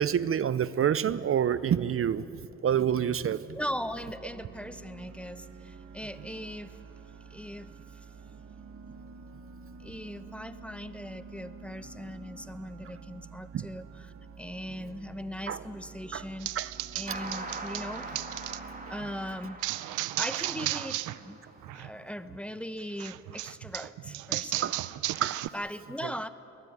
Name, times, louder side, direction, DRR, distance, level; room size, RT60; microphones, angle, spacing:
voice 1, 0.0-3.6 13.5-13.7 15.5-15.6 16.1-16.3 16.5-16.7 17.1-17.2 21.7-21.8 24.6-24.8 25.2-25.5 26.0-26.1, right 9 dB, 45° right, 0.6 m, -28 dB
voice 2, 3.5-8.1 9.8-13.8 14.4-16.5 16.9-18.1 18.9-19.6 20.2-21.4 21.7-24.7 25.5-26.3, equal, 5° left, 0.9 m, -39 dB
sound 1, 3.5-19.3, right 4 dB, 65° right, 1.9 m, -48 dB
sound 2, 16.4-18.6 19.6-21.2 21.5-21.9 23.0-25.5, right 16 dB, 85° right, 0.6 m, -34 dB
sound 3, 17.1-21.9, right 3 dB, 30° right, 3.0 m, -43 dB
22.5 x 18.0 x 9.3 m
cardioid pair, 90°, 30 cm